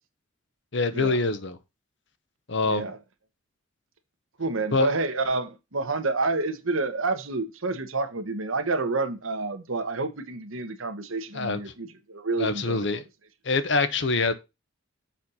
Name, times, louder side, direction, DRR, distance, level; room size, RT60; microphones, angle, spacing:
voice 1, 0.7-1.6 2.5-2.9 4.7-4.9 11.3-11.6 12.4-13.0 13.4-14.3, left 3 dB, 55° left, 0.9 m, -24 dB
voice 2, 2.6-3.0 4.4-13.0, right 3 dB, 75° right, 1.2 m, -29 dB
7.3 x 4.4 x 5.4 m
head